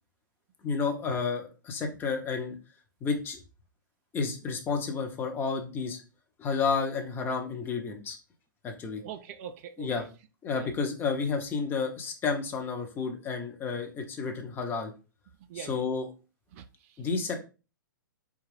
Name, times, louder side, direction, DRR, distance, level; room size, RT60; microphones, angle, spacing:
voice 1, 0.6-2.6 3.0-3.4 4.1-6.0 6.4-8.2 8.6-9.0 9.8-10.0 10.4-14.9 15.5-16.1 17.0-17.4, left 5 dB, 20° left, 0.7 m, -31 dB
voice 2, 9.0-10.1 10.5-10.7 15.5-16.0 16.5-17.0, right 9 dB, 40° right, 0.4 m, -43 dB
4.4 x 2.4 x 3.2 m
figure-of-eight pair, 115°, 11 cm